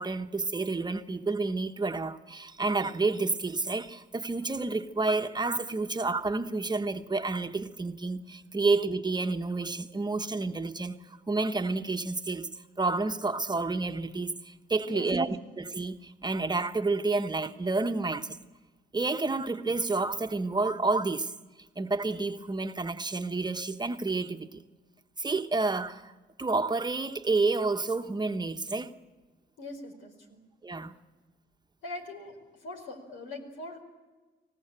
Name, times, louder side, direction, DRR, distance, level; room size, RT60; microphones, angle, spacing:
voice 1, 0.0-11.0 11.3-12.5 12.8-18.4 18.9-21.3 21.8-24.6 25.2-26.1 26.4-28.9 30.6-30.9, right 3 dB, 20° right, 1.0 m, -29 dB
voice 2, 14.8-15.3 29.6-30.4 31.8-32.4 32.6-33.8, left 2 dB, 85° left, 4.7 m, -42 dB
24.5 x 17.5 x 9.0 m
cardioid pair, 90°, 20 cm